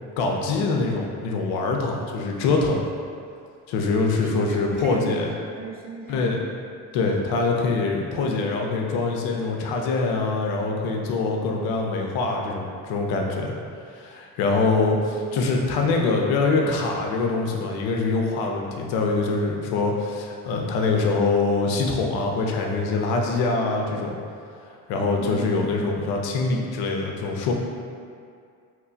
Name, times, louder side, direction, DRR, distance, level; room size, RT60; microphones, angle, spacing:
voice 1, 0.2-2.8 3.7-5.3 6.1-6.4 6.9-13.6 13.9-24.2 24.9-27.5, left 3 dB, 80° left, 1 dB, 0.6 m, -24 dB
voice 2, 4.2-6.3 14.9-15.0 25.1-25.6, right 3 dB, 25° right, -2 dB, 0.5 m, -38 dB
3.0 x 2.2 x 3.8 m, 2.3 s
cardioid pair, 95°, 37 cm